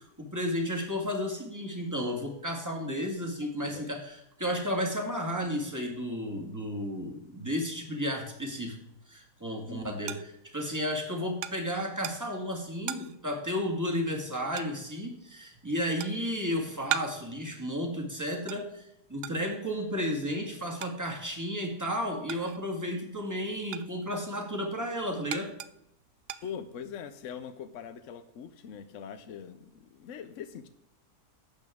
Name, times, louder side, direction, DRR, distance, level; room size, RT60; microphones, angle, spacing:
voice 1, 0.0-8.8 9.1-10.2 10.5-18.8 19.1-25.5, equal, 10° right, 1 dB, 1.8 m, -33 dB
voice 2, 3.4-3.9 9.7-10.0 26.4-30.7, left 7 dB, 60° left, 10 dB, 0.9 m, -42 dB
sound 1, 9.1-22.9 23.2-27.1, right 10 dB, 80° right, 0.5 m, -41 dB
12.0 x 8.2 x 3.6 m, 0.79 s
omnidirectional pair, 1.7 m